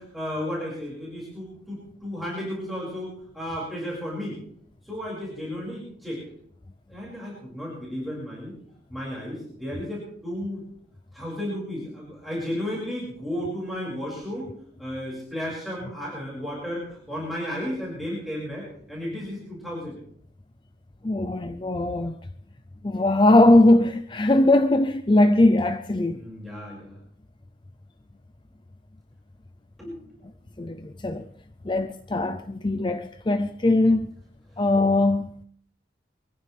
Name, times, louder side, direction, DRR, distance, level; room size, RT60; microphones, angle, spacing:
voice 1, 0.0-4.4 4.9-6.2 6.9-8.6 8.9-10.7 11.1-14.5 14.8-20.0 26.1-26.9 29.8-30.0, equal, ahead, 5.9 m, -33 dB
voice 2, 21.0-22.2 22.8-26.2 30.6-31.3 31.6-34.1 34.6-35.3, left 2 dB, 25° left, 0.6 m, -20 dB
23.5 x 15.0 x 3.4 m
head